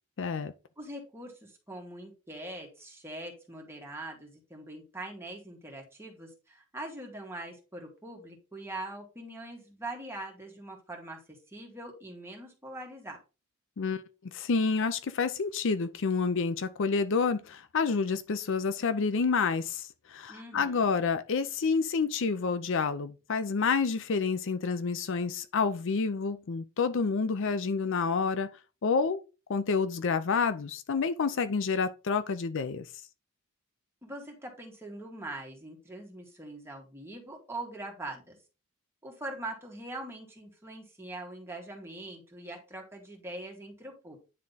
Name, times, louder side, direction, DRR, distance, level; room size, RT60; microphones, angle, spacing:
voice 1, 0.2-0.5 13.8-14.0 14.3-28.5 28.8-29.2 29.5-32.9, left 5 dB, 60° left, 0.5 m, -29 dB
voice 2, 0.8-13.2 20.3-20.9 34.0-38.4 39.0-44.2, right 1 dB, 10° right, 2.0 m, -42 dB
9.7 x 3.6 x 4.1 m
head